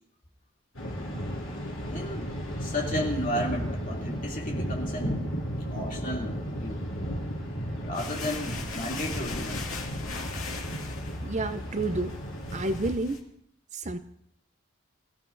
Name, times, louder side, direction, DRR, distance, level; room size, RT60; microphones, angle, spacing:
Thunder, 0.7-12.9, equal, 65° left, 5.6 m, -34 dB
voice 1, 1.9-5.3 5.7-6.8 7.8-9.6, equal, 40° left, -1 dB, 2.7 m, -33 dB
sound 1, 7.9-13.2, left 3 dB, 85° left, 2.2 m, -39 dB
voice 2, 11.2-12.1 12.5-13.2 13.7-14.0, right 2 dB, 35° right, 10 dB, 0.6 m, -30 dB
24.5 x 15.0 x 2.6 m, 0.70 s
head